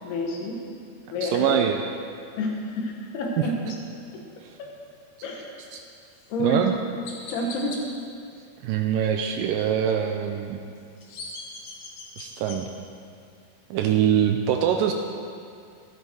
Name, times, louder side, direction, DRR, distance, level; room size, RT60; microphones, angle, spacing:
voice 1, 0.0-0.6 1.1-1.6 2.4-3.8 4.1-4.2 4.6-4.7 5.2-5.5 6.3-6.6 7.3-7.8, left 1 dB, 80° left, 0 dB, 3.6 m, -29 dB
voice 2, 1.2-1.8 5.7-5.8 6.4-6.7 8.6-10.6 12.2-12.7 13.7-14.9, right 9 dB, 85° right, 4 dB, 2.0 m, -23 dB
Chirp tweet, 6.1-6.3 7.0-7.8 10.8-12.6, left 3 dB, 55° left, 2.2 m, -39 dB
13.0 x 12.0 x 4.7 m, 2.4 s
omnidirectional pair, 4.5 m